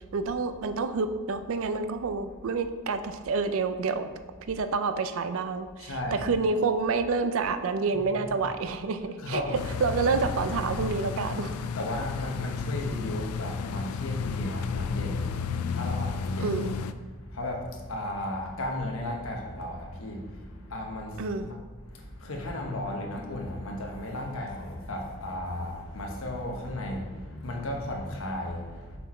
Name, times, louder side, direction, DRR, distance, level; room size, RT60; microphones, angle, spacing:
voice 1, 0.1-4.1 4.5-9.4 9.8-11.6 16.4-16.8 21.2-21.5, right 4 dB, 60° right, 10 dB, 0.4 m, -28 dB
voice 2, 5.8-6.3 8.2-8.3 9.2-9.6 11.8-16.6 17.2-21.6 21.9-29.0, left 1 dB, 65° left, 0 dB, 1.1 m, -35 dB
sound 1, 9.5-16.9, left 5 dB, 80° left, 0.4 m, -32 dB
6.7 x 4.3 x 4.2 m, 1.4 s
head